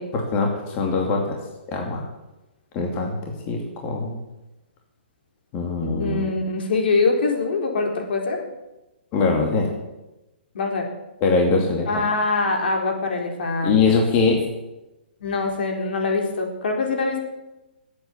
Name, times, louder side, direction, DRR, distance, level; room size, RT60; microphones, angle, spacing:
voice 1, 0.1-1.4 1.7-2.1 2.7-4.2 5.5-6.3 9.1-9.7 11.2-12.0 13.6-14.4, left 4 dB, 25° left, 0 dB, 2.6 m, -22 dB
voice 2, 5.8-8.4 10.5-10.9 11.9-13.8 15.2-17.2, left 3 dB, 65° left, 2 dB, 4.2 m, -23 dB
19.5 x 8.6 x 7.3 m, 0.99 s
hypercardioid pair, 155°, 6 cm